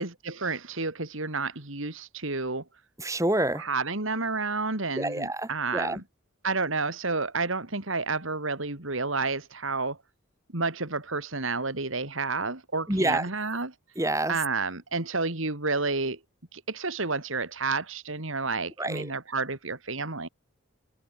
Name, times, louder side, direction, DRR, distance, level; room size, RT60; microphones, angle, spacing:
voice 1, 0.0-2.6 3.6-6.0 6.4-10.0 10.5-13.7 14.3-16.2 16.5-20.3, right 3 dB, 70° right, 3.0 m, -30 dB
voice 2, 3.0-3.7 5.0-6.0 12.9-13.3 14.0-14.4 18.8-19.1, right 1 dB, 15° right, 3.5 m, -27 dB
head